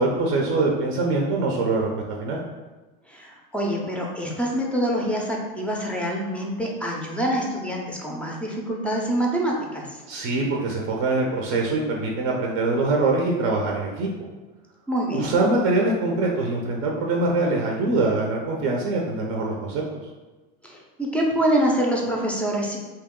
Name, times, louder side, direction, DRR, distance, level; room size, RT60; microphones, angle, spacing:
voice 1, 0.0-1.9 2.2-2.4 10.1-14.3 15.1-19.8, right 2 dB, 50° right, 0 dB, 0.6 m, -23 dB
voice 2, 3.1-9.9 14.9-15.4 20.6-22.8, right 1 dB, 5° left, -1 dB, 0.5 m, -25 dB
3.0 x 2.8 x 3.6 m, 1.2 s
supercardioid pair, 115°, 30 cm